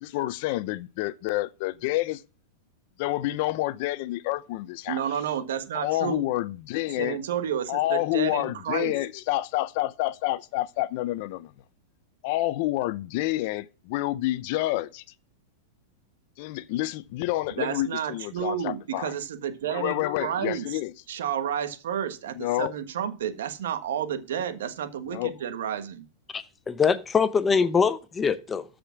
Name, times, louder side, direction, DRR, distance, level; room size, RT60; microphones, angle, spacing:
voice 1, 0.0-2.2 3.0-5.0 5.7-7.2 7.7-11.5 12.2-15.0 16.4-19.1 19.7-20.9 22.3-22.7 25.1-25.4 27.6-27.7, left 16 dB, 50° left, 0.6 m, -28 dB
voice 2, 4.9-6.2 7.0-8.9 17.6-20.8 21.1-26.1, right 9 dB, 80° right, 1.5 m, -31 dB
voice 3, 26.3-28.6, left 5 dB, 15° left, 0.7 m, -23 dB
13.0 x 5.1 x 5.9 m
supercardioid pair, 145°, 0 cm